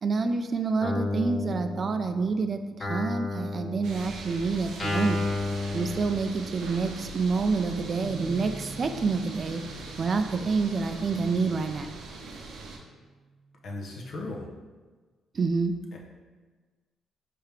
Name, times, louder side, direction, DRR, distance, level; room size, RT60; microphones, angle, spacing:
voice 1, 0.0-5.2 5.7-9.6 10.0-11.9 15.3-15.8, right 4 dB, 45° right, 7 dB, 0.3 m, -28 dB
Guitar, 0.8-2.3 2.8-6.7, left 2 dB, 40° left, 1.1 m, -32 dB
sound 1, 3.8-12.8, right 2 dB, 80° right, 0.6 m, -41 dB
Bass guitar, 8.0-14.3, right 2 dB, 20° left, 0.6 m, -48 dB
voice 2, 13.6-14.5 15.9-16.0, left 2 dB, 60° left, 0 dB, 0.7 m, -37 dB
4.9 x 3.4 x 3.2 m, 1.3 s
cardioid pair, 90°, 0 cm